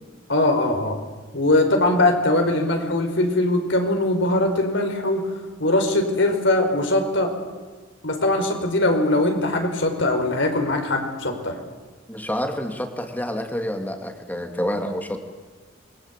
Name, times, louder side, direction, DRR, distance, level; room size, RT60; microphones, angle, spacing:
voice 1, 0.3-0.9 1.3-5.2 5.6-7.3 8.0-11.6, left 2 dB, 70° left, 4 dB, 5.0 m, -21 dB
voice 2, 12.1-15.2, equal, 10° left, 5 dB, 2.8 m, -28 dB
28.5 x 23.0 x 8.5 m, 1.4 s
head